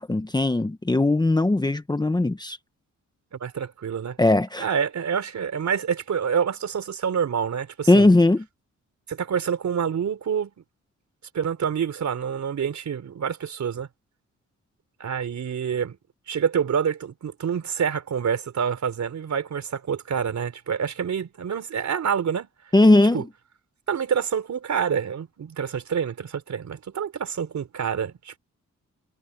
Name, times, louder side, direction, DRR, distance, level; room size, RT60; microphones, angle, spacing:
voice 1, 0.0-2.6 4.2-4.7 7.9-8.4 22.7-23.2, left 2 dB, 15° left, 1.0 m, -19 dB
voice 2, 3.3-4.2 4.6-8.1 9.1-10.5 11.3-13.9 15.0-16.0 16.3-22.5 23.1-23.2 23.9-28.4, right 7 dB, 65° right, 3.9 m, -27 dB
wide cardioid pair, 125°, 31 cm